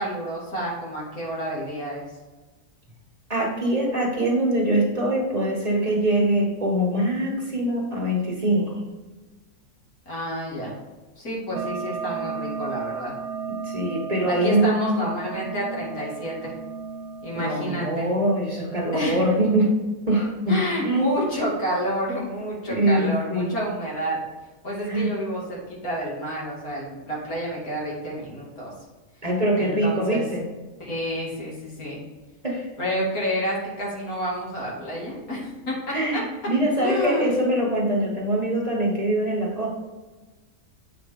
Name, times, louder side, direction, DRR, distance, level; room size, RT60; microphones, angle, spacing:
voice 1, 0.0-2.0 10.1-10.8 11.2-13.1 14.3-16.5 17.2-18.1 18.9-19.3 20.5-24.2 24.6-28.7 29.6-30.2 30.8-32.0 32.8-36.2 36.8-37.3, equal, 85° left, -5 dB, 3.0 m, -29 dB
voice 2, 3.3-8.8 13.6-14.9 17.3-19.7 20.1-20.6 20.8-21.1 22.7-23.6 24.9-25.1 29.2-30.5 32.4-32.7 35.9-39.7, right 1 dB, 30° right, -2 dB, 1.4 m, -23 dB
sound 1, 11.5-17.9, right 5 dB, 65° right, 0.8 m, -34 dB
7.8 x 5.1 x 3.7 m, 1.2 s
omnidirectional pair, 1.5 m